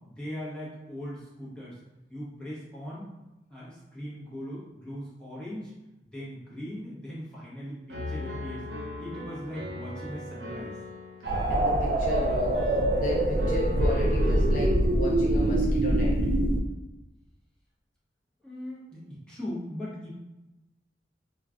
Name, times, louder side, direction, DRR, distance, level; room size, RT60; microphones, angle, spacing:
voice 1, 0.0-1.8 2.1-3.1 3.5-5.7 6.0-10.7 16.6-16.7 18.4-20.1, equal, 5° left, -9 dB, 0.8 m, -39 dB
Piano, 7.9-14.7, equal, 80° right, 0.7 m, -39 dB
sound 1, 11.3-16.6, right 1 dB, 55° right, 0.3 m, -24 dB
voice 2, 11.5-12.5 12.9-16.2, left 1 dB, 45° left, -4 dB, 0.4 m, -34 dB
2.3 x 2.2 x 3.6 m, 1.0 s
head